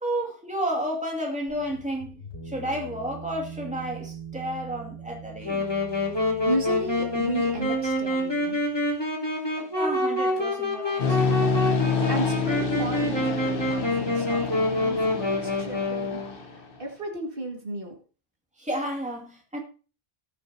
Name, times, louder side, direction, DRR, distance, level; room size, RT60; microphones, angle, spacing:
voice 1, 0.0-5.6 9.8-11.2 18.6-19.6, right 1 dB, 5° right, 2.3 m, -31 dB
sound 1, 1.5-8.9, right 4 dB, 90° left, 3.8 m, -43 dB
Wind instrument woodwind instrument, 5.4-16.4, left 1 dB, 25° left, 3.4 m, -27 dB
voice 2, 6.5-8.6 11.9-16.2 16.8-17.9, right 2 dB, 60° right, 2.3 m, -33 dB
sound 2, 11.0-16.8, left 6 dB, 60° left, 1.4 m, -28 dB
19.0 x 6.6 x 2.8 m
omnidirectional pair, 1.0 m